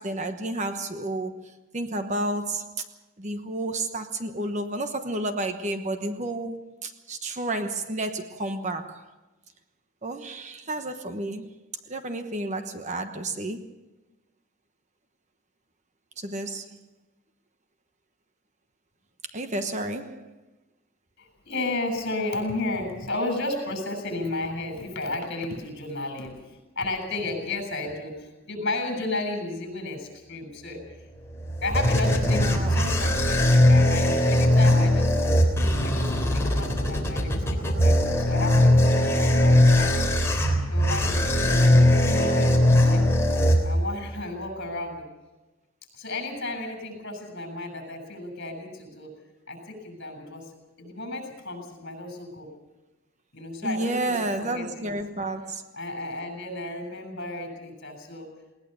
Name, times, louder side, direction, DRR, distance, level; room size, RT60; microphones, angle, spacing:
voice 1, 0.0-2.9 3.2-9.1 10.0-11.5 11.9-13.7 16.2-16.8 19.3-20.4 32.2-32.8 41.9-42.5 53.6-55.6, right 2 dB, 35° right, 1.1 m, -31 dB
voice 2, 21.2-30.8 31.6-35.2 35.8-40.1 40.7-43.1 43.6-45.0 45.9-49.1 49.5-50.5 50.8-52.5 53.3-54.1 54.4-54.9 55.7-58.3, left 2 dB, 55° left, 7.4 m, -33 dB
sound 1, 31.1-44.1, left 1 dB, 15° left, 3.5 m, -20 dB
20.0 x 19.5 x 7.0 m
head